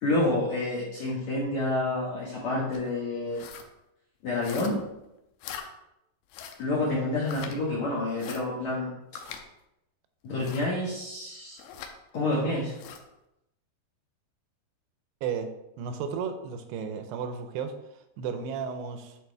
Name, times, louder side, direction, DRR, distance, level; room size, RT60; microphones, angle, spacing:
voice 1, 0.0-3.4 4.2-4.8 6.6-8.9 10.2-11.6 12.1-12.7, left 2 dB, 65° left, -7 dB, 1.9 m, -28 dB
sound 1, 2.7-2.9 3.3-3.7 4.4-4.9 5.4-5.7 6.3-6.6 7.2-7.5 8.2-8.4 9.2-9.4 10.4-10.7 11.6-11.9 12.7-13.0, left 8 dB, 85° left, 2.8 m, -42 dB
voice 2, 15.2-15.5 15.8-19.2, right 6 dB, 80° right, 8 dB, 2.6 m, -34 dB
9.8 x 4.5 x 3.5 m, 0.88 s
omnidirectional pair, 5.1 m